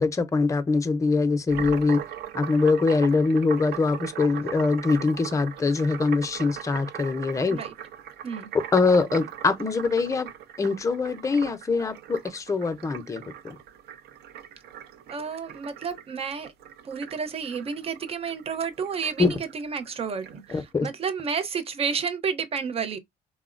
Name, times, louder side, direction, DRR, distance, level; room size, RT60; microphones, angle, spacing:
voice 1, 0.0-2.0 2.3-7.6 8.7-10.3 10.6-13.6 19.2-19.4 20.5-20.9, left 4 dB, 20° left, 0.5 m, -23 dB
sound 1, 1.5-20.6, right 10 dB, 75° right, 0.6 m, -40 dB
voice 2, 15.1-16.5 16.8-23.0, right 6 dB, 35° right, 0.7 m, -31 dB
3.5 x 2.0 x 2.5 m
cardioid pair, 110°, 17 cm